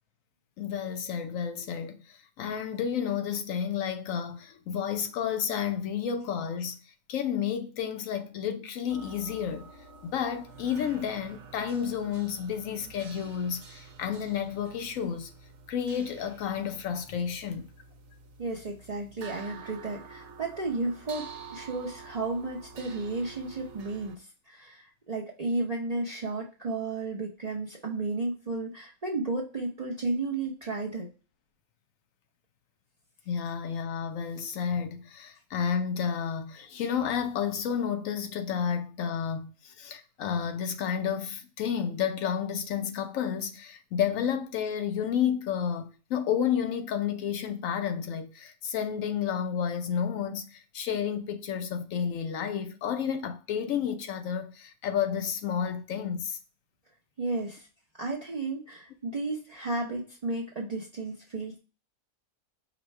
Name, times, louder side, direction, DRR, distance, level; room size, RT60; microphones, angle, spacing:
voice 1, 0.6-9.7 10.0-15.3 15.7-17.7 33.3-56.4, left 8 dB, 70° left, 0.9 m, -31 dB
sound 1, 8.9-24.2, right 5 dB, 70° right, 1.0 m, -48 dB
voice 2, 18.4-31.1 57.2-57.7 58.0-61.6, right 3 dB, 45° right, 0.5 m, -33 dB
4.9 x 2.1 x 4.5 m
omnidirectional pair, 1.5 m